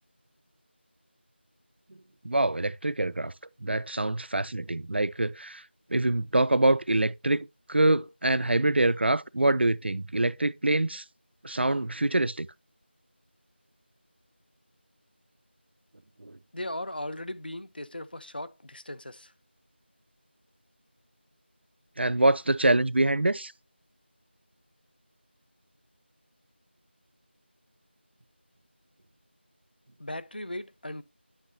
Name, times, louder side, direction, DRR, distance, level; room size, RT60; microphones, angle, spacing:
voice 1, 2.2-3.3 3.6-5.6 5.9-11.0 11.4-12.5 16.2-16.4 22.0-23.5, right 2 dB, 65° right, 0.4 m, -25 dB
voice 2, 16.5-19.3 30.0-31.0, left 1 dB, 55° left, 0.6 m, -37 dB
9.8 x 6.1 x 2.7 m
figure-of-eight pair, 175°, 6 cm